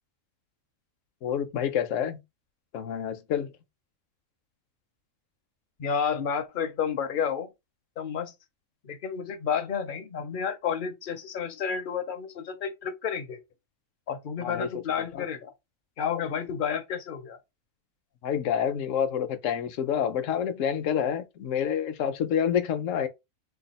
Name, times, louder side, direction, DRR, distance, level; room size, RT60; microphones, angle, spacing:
voice 1, 1.2-2.2 2.7-3.5 14.4-14.7 15.1-15.2 18.2-23.1, left 8 dB, 70° left, 1.0 m, -28 dB
voice 2, 5.8-7.5 8.0-8.3 8.8-13.4 14.1-15.5 16.0-17.4, left 7 dB, 50° left, 0.7 m, -31 dB
3.3 x 2.3 x 4.1 m
omnidirectional pair, 1.4 m